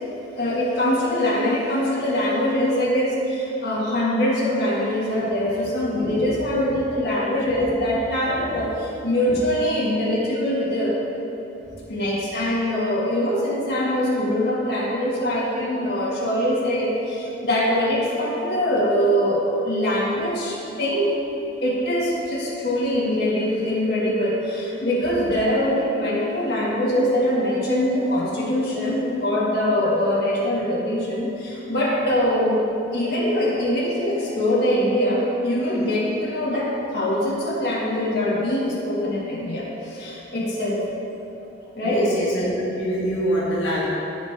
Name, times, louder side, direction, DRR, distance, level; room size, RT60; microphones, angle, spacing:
voice 1, 0.4-11.0 11.9-21.1 21.6-32.6 32.9-40.8 41.8-42.1, left 1 dB, 60° left, -7 dB, 2.2 m, -23 dB
voice 2, 41.8-43.9, equal, 90° left, -7 dB, 2.0 m, -24 dB
15.5 x 5.2 x 3.7 m, 2.9 s
head